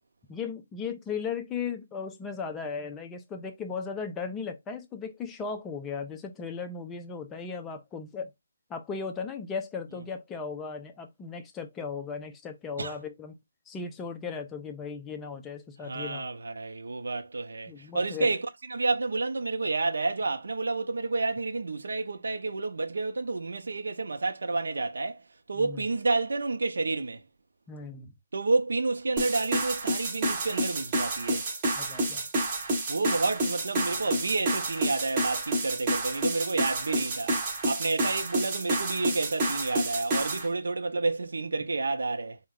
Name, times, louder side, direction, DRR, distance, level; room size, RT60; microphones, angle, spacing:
voice 1, 0.3-8.3 8.7-13.4 13.7-16.2 17.7-18.3 25.5-25.8 27.7-28.1 31.8-32.3, left 5 dB, 5° left, 0.3 m, -36 dB
voice 2, 15.8-18.4 18.7-25.2 25.5-27.2 28.3-31.5 32.9-37.4 37.7-42.4, right 3 dB, 70° right, 0.6 m, -30 dB
sound 1, 29.2-40.5, right 1 dB, 15° right, 0.7 m, -29 dB
4.5 x 2.1 x 3.5 m
hypercardioid pair, 180°, 0 cm